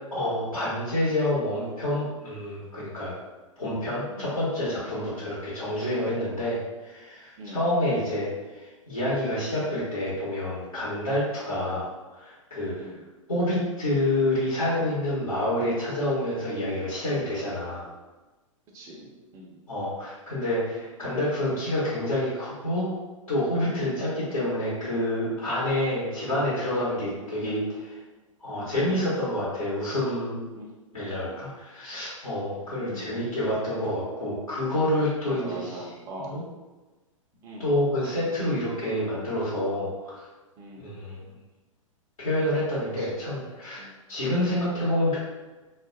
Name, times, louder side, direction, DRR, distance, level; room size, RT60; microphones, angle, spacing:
voice 1, 0.1-3.2 3.6-12.7 13.3-17.9 19.7-23.0 23.3-28.0 28.4-30.4 30.9-35.7 36.3-36.4 37.6-40.2 40.8-41.2 42.2-43.8 44.1-45.2, left 1 dB, 85° left, -10 dB, 1.0 m, -28 dB
voice 2, 12.6-13.0 18.7-19.6 23.7-24.0 28.5-28.9 30.5-30.7 31.0-31.3 32.8-33.1 35.3-36.4 37.4-37.7 40.6-41.0 43.0-43.1 43.8-43.9, right 1 dB, 20° right, -2 dB, 0.4 m, -42 dB
2.3 x 2.1 x 2.5 m, 1.2 s
figure-of-eight pair, 110°, 17 cm